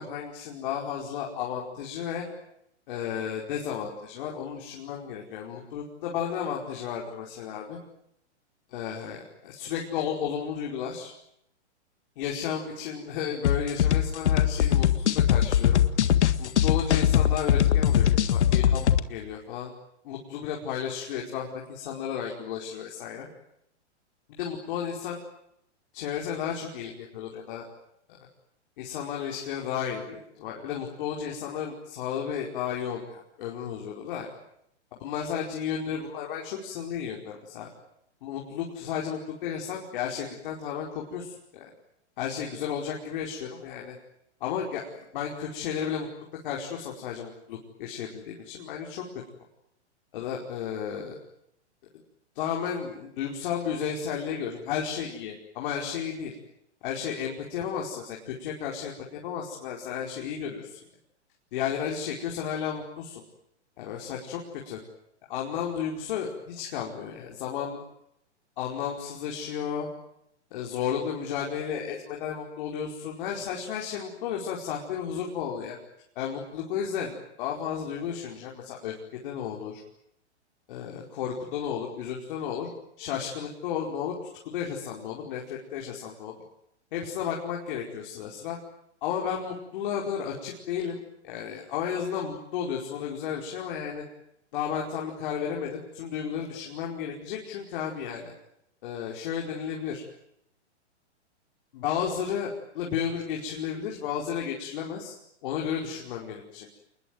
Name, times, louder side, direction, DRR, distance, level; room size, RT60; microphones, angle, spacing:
voice 1, 0.0-2.3 2.9-7.8 8.7-11.1 12.2-15.8 16.4-19.7 20.0-23.3 24.4-25.2 25.9-27.7 28.1-28.2 28.8-34.3 34.9-37.7 38.2-41.7 42.2-44.0 44.4-46.1 46.4-49.0 50.1-51.2 52.3-56.3 56.8-60.8 61.5-63.2 63.8-64.8 65.3-67.8 68.6-69.9 70.5-75.8 76.1-79.8 80.7-82.7 83.0-84.2 84.5-86.3 86.9-88.6 89.0-94.0 94.5-98.3 98.8-100.0 101.7-105.1 105.4-106.7, left 8 dB, 45° left, -1 dB, 5.1 m, -33 dB
sound 1, 13.4-19.0, left 10 dB, 70° left, 1.8 m, -22 dB
28.5 x 21.5 x 9.6 m, 0.78 s
hypercardioid pair, 150°, 35 cm